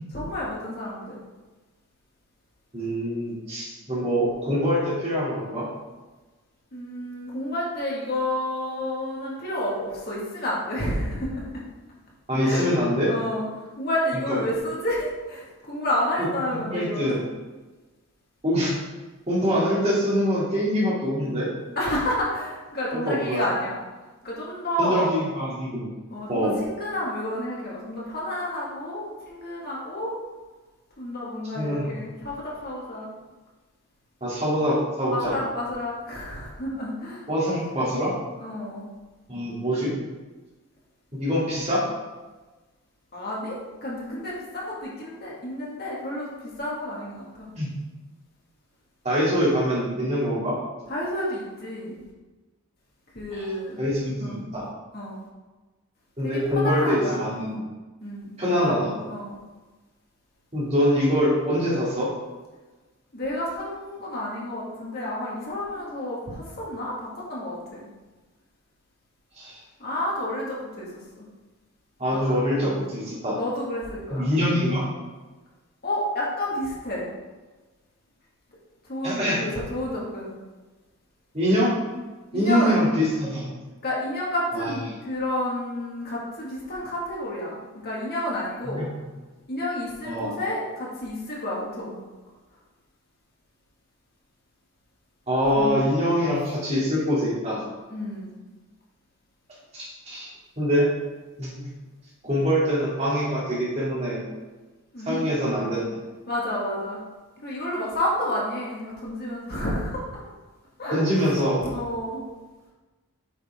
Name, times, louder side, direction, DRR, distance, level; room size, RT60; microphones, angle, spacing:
voice 1, 0.1-1.2 6.7-11.4 12.4-12.7 13.1-13.4 13.8-17.2 21.8-23.8 24.2-25.1 26.1-30.1 31.0-33.1 35.1-37.2 38.4-38.9 43.1-47.5 50.9-52.0 53.1-53.8 54.2-54.4 54.9-55.2 56.2-57.2 58.0-58.7 59.1-59.4 63.1-67.9 69.8-70.9 71.2-71.3 72.6-72.8 73.3-74.3 75.8-77.1 78.9-80.4 82.3-82.7 83.8-88.8 89.5-92.0 95.6-95.7 97.9-98.3 104.9-105.2 106.3-107.0 107.4-110.0 110.8-111.3 111.6-112.2, left 1 dB, 45° left, -5 dB, 2.1 m, -30 dB
voice 2, 2.7-5.7 12.3-13.1 14.1-14.4 16.5-17.2 18.4-18.7 19.3-21.5 22.9-23.4 24.8-25.9 26.3-26.6 31.5-31.9 34.2-35.4 37.3-38.1 39.3-39.9 41.2-41.8 47.6-47.7 49.0-50.6 53.3-53.5 53.8-54.7 56.2-57.6 58.4-58.9 60.5-62.1 69.3-69.6 72.0-73.4 74.1-74.9 79.0-79.4 81.3-81.7 82.3-83.5 84.5-84.7 88.6-88.9 90.0-90.3 95.3-97.6 99.7-100.3 100.6-100.9 101.4-101.7 102.2-104.2 105.1-105.9 110.9-111.6, equal, 30° right, -7 dB, 2.8 m, -24 dB
8.3 x 6.6 x 3.7 m, 1.2 s
head